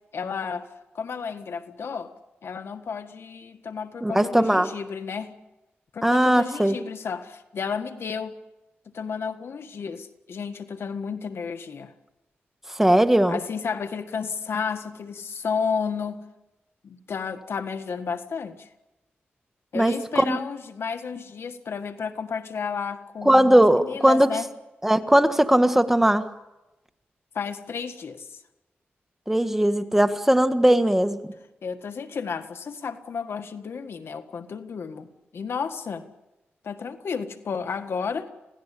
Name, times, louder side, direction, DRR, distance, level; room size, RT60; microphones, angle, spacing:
voice 1, 0.1-0.7 0.9-2.1 2.4-5.3 5.9-8.4 8.8-11.9 13.3-16.2 16.8-18.7 19.7-24.5 27.3-28.4 31.6-36.1 36.6-38.3, left 6 dB, 70° left, 8 dB, 1.6 m, -32 dB
voice 2, 4.0-4.7 6.0-6.8 12.7-13.4 19.7-19.9 20.2-20.4 23.2-24.3 24.8-26.2 29.3-31.2, right 1 dB, 5° right, 8 dB, 1.6 m, -19 dB
27.0 x 17.5 x 8.5 m, 1.0 s
cardioid pair, 80°, 4 cm